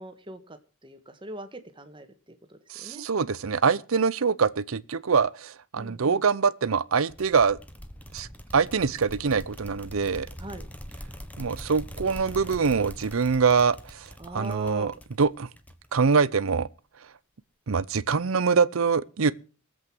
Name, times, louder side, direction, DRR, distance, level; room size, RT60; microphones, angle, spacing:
voice 1, 0.0-2.1 2.5-3.0 5.8-6.2 10.4-10.6 14.2-15.0, right 1 dB, 25° right, 1.5 m, -41 dB
voice 2, 2.7-7.6 8.1-8.3 8.5-10.3 11.4-14.1 14.3-14.9 15.2-15.5 15.9-16.7 17.7-19.3, right 5 dB, 75° right, 0.6 m, -24 dB
sound 1, 7.1-16.3, equal, 5° left, 1.2 m, -43 dB
20.0 x 8.1 x 6.1 m
head